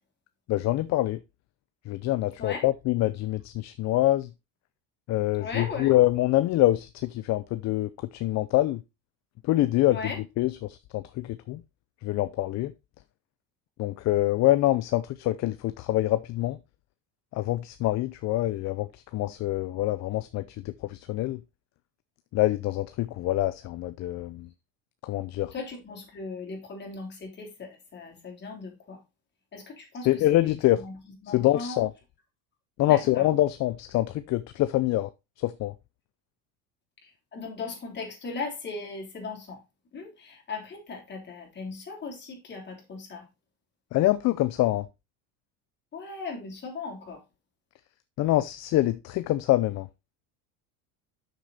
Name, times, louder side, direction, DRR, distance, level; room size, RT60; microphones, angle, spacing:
voice 1, 0.5-1.2 1.9-4.3 5.1-8.8 9.5-10.0 10.4-11.6 12.0-12.7 13.8-16.6 17.3-21.4 22.3-24.5 25.0-25.5 30.1-30.8 31.3-31.9 32.8-35.1 35.4-35.7 43.9-44.9 48.2-49.9, left 15 dB, 45° left, 0.6 m, -25 dB
voice 2, 5.4-5.9 9.9-10.2 25.4-29.0 29.5-31.9 32.9-33.3 37.0-39.6 39.9-43.3 45.9-47.2, left 4 dB, 30° left, 3.5 m, -38 dB
6.6 x 6.6 x 4.1 m
cardioid pair, 130°, 37 cm